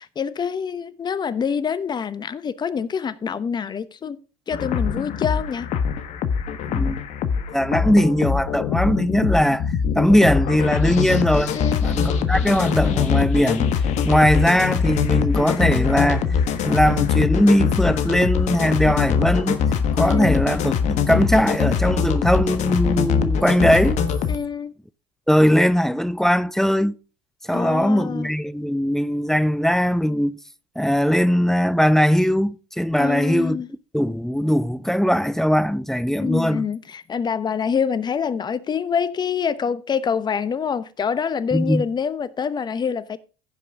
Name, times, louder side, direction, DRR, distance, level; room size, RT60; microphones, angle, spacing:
voice 1, 0.0-4.2 4.5-5.7 11.5-11.9 20.0-20.4 24.3-24.7 27.5-28.3 33.0-33.7 36.2-43.2, left 6 dB, 30° left, 1.0 m, -26 dB
sound 1, 4.5-24.4, left 6 dB, 55° left, 1.3 m, -22 dB
voice 2, 6.7-7.0 7.5-13.7 14.1-16.3 16.6-19.6 19.9-24.0 25.3-26.9 27.5-30.4 30.8-33.6 33.9-36.6 41.5-41.8, equal, 5° left, 0.5 m, -20 dB
15.5 x 5.5 x 3.7 m
hypercardioid pair, 80°, 14 cm